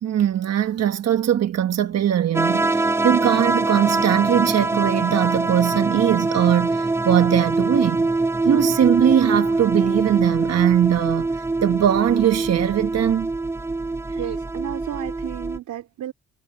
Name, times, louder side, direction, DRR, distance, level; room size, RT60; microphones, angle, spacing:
voice 1, 0.0-8.1 8.4-13.3 14.1-14.2, right 10 dB, 60° right, 1.3 m, -20 dB
sound 1, 2.3-15.6, right 3 dB, 10° right, 0.5 m, -23 dB
voice 2, 14.2-16.1, right 12 dB, 75° right, 3.0 m, -32 dB
cardioid pair, 90°, 30 cm